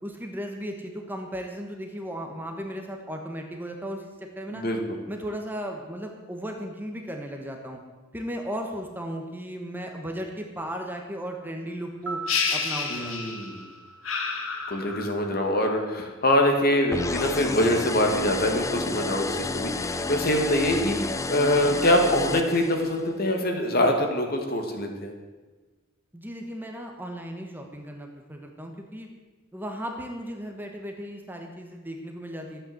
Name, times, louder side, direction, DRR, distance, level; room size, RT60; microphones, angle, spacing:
voice 1, 0.0-4.6 5.1-7.8 8.1-12.2 12.5-13.2 26.1-29.1 29.5-32.6, equal, 10° right, 2 dB, 1.2 m, -36 dB
voice 2, 4.5-5.0 12.9-13.7 14.7-25.1, left 1 dB, 45° left, 3 dB, 2.0 m, -24 dB
sound 1, 11.9-16.1 16.3-16.4, right 3 dB, 65° right, 1.5 m, -42 dB
sound 2, 12.3-13.6 14.0-15.3, left 5 dB, 70° left, 1.9 m, -29 dB
sound 3, 16.9-23.1, left 3 dB, 15° left, 0.3 m, -31 dB
13.0 x 8.8 x 7.9 m, 1.3 s
head